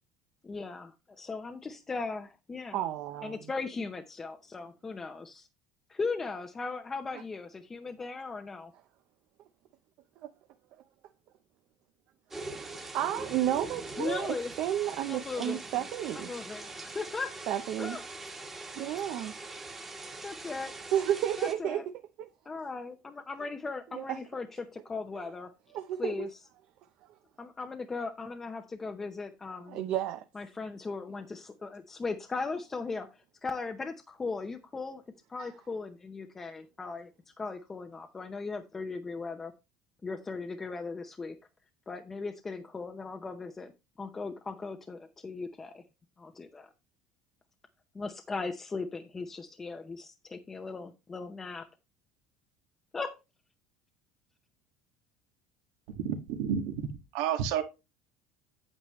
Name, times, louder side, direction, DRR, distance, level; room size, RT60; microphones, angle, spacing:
voice 1, 0.4-2.9 3.2-5.5 5.9-8.7 14.0-14.5 15.1-15.6 16.1-17.4 17.8-18.0 20.2-20.7 21.4-21.8 22.5-25.5 26.0-26.3 27.4-29.9 30.3-33.1 33.4-35.0 35.3-37.1 37.4-39.5 40.0-41.4 41.9-43.7 44.0-45.8 46.2-46.7 47.9-51.6 52.9-53.1, left 4 dB, 15° left, 0.7 m, -38 dB
voice 2, 2.7-3.5 12.9-16.3 17.5-18.0 18.8-19.4 20.9-21.8 23.9-24.2 25.7-26.3 29.7-30.2 35.4-35.5, right 11 dB, 50° right, 0.7 m, -31 dB
sound 1, 12.3-21.5, right 2 dB, 10° right, 1.4 m, -43 dB
voice 3, 56.0-56.9 57.1-57.6, right 8 dB, 85° right, 1.7 m, -30 dB
8.9 x 8.0 x 3.1 m
cardioid pair, 160°, 2 cm